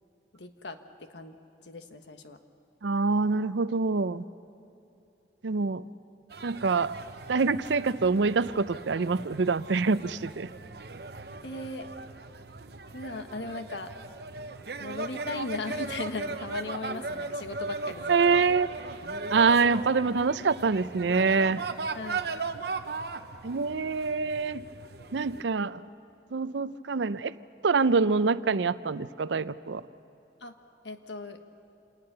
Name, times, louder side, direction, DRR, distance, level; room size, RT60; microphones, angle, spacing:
voice 1, 0.3-1.4 1.6-2.4 11.4-11.9 12.9-13.9 14.8-18.4 21.9-22.2 30.4-30.5 30.8-31.4, left 2 dB, 85° left, 7 dB, 1.4 m, -38 dB
voice 2, 2.8-4.2 5.4-5.8 6.4-7.0 7.3-10.5 18.1-18.7 19.3-21.6 23.4-24.6 25.1-25.8 26.3-27.3 27.6-29.8, right 4 dB, 90° right, 15 dB, 0.6 m, -25 dB
sound 1, 6.3-25.4, right 3 dB, 65° right, 0.9 m, -38 dB
27.0 x 19.0 x 6.8 m, 2.8 s
head